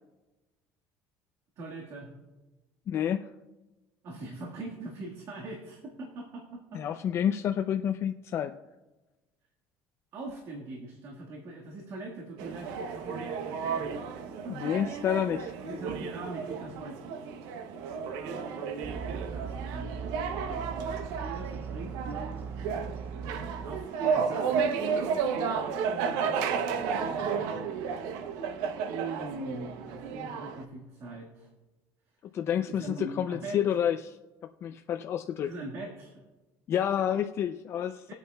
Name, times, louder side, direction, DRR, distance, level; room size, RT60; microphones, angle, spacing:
voice 1, 1.6-2.1 4.0-7.0 10.1-14.8 15.6-17.0 17.4-17.5 18.1-20.0 20.4-22.5 23.6-27.6 28.9-31.5 32.7-33.6 35.4-36.3 38.1-38.2, right 2 dB, 55° right, 0 dB, 1.6 m, -42 dB
voice 2, 2.9-3.3 6.7-8.6 14.5-15.5 32.3-34.2 34.6-35.5 36.7-38.1, left 9 dB, 45° left, 7 dB, 0.4 m, -29 dB
sound 1, 12.4-30.6, right 6 dB, 85° right, 0.7 m, -33 dB
sound 2, 18.8-23.9, right 6 dB, 35° right, 0.4 m, -39 dB
20.5 x 8.1 x 2.2 m, 1.1 s
cardioid pair, 135°, 6 cm